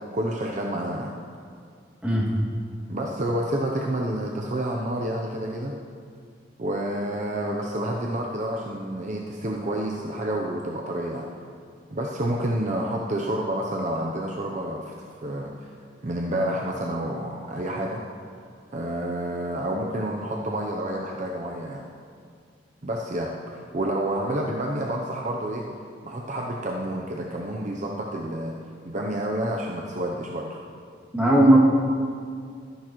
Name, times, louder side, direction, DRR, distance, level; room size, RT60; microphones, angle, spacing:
voice 1, 0.1-1.1 2.9-5.7 6.6-11.3 11.9-15.5 16.0-18.0 18.7-21.8 22.8-25.6 26.0-28.5 28.8-30.6, right 1 dB, 40° right, -1 dB, 0.6 m, -29 dB
voice 2, 31.1-31.6, right 1 dB, 10° right, -6 dB, 2.2 m, -17 dB
13.0 x 10.5 x 3.0 m, 2.2 s
head